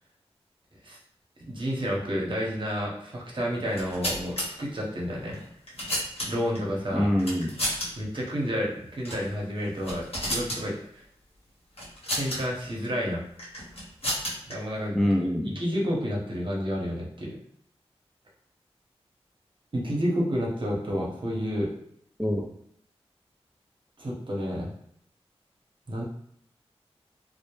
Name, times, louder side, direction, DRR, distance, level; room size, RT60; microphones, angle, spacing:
voice 1, 1.5-5.4 6.2-7.1 8.0-11.0 12.1-13.2 14.5-15.0 15.5-17.4 19.7-21.7 24.0-24.7 25.9-26.0, equal, 50° right, -3 dB, 0.8 m, -30 dB
sound 1, 3.6-4.5 5.3-6.6 7.2-7.9 8.1-8.3 9.0-9.3 9.6-10.6 11.8-12.4 13.4-14.5, equal, 65° left, 0.9 m, -31 dB
voice 2, 6.9-7.5 14.9-15.6 22.2-22.4, equal, 5° left, -1 dB, 0.3 m, -25 dB
2.1 x 2.0 x 2.9 m, 0.69 s
cardioid pair, 50°, 11 cm